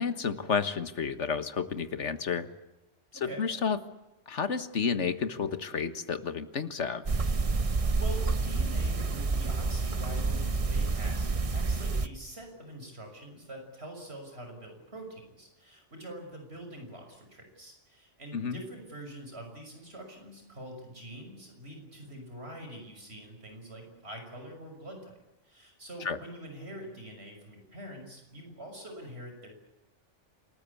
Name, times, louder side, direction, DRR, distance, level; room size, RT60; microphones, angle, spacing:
voice 1, 0.0-2.5 3.1-3.8 4.3-7.0 18.3-18.6 26.0-26.2, left 6 dB, 75° left, 11 dB, 1.8 m, -31 dB
voice 2, 3.1-3.5 8.0-29.6, right 1 dB, 60° right, 4 dB, 6.4 m, -45 dB
sound 1, 7.1-12.1, right 3 dB, 30° right, 0.9 m, -28 dB
28.0 x 19.5 x 8.5 m, 0.99 s
omnidirectional pair, 1.2 m